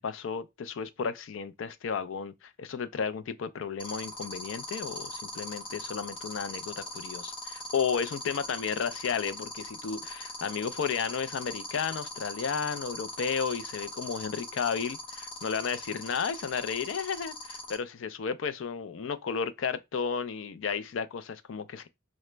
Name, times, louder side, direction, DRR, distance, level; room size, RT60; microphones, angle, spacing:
voice 1, 0.0-21.9, left 6 dB, 70° left, 0.4 m, -33 dB
sound 1, 3.8-17.7, left 2 dB, 25° left, 0.8 m, -39 dB
4.8 x 2.1 x 3.2 m
head